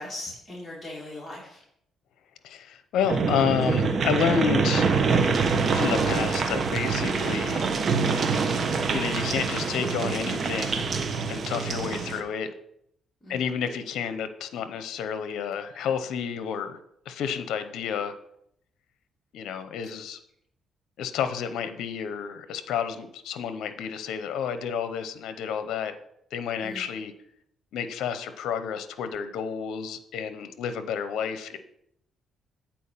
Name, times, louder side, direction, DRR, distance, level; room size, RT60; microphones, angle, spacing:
voice 1, 0.0-1.6 13.2-13.4 19.8-19.9 26.6-26.9, left 1 dB, 10° left, -7 dB, 2.4 m, -39 dB
voice 2, 2.4-4.9 5.7-7.6 8.9-10.9 11.3-12.5 13.3-16.8 17.1-18.1 19.3-20.2 21.0-25.9 26.3-27.1 27.7-31.6, left 7 dB, 80° left, 10 dB, 0.7 m, -30 dB
sound 1, 3.0-12.2, right 5 dB, 50° right, 1.0 m, -25 dB
sound 2, 7.1-7.7 8.5-9.0 9.8-10.3 10.9-12.6 13.7-14.1 15.5-15.8, equal, 40° left, 1.5 m, -45 dB
8.5 x 4.3 x 5.6 m, 0.73 s
cardioid pair, 90°, 0 cm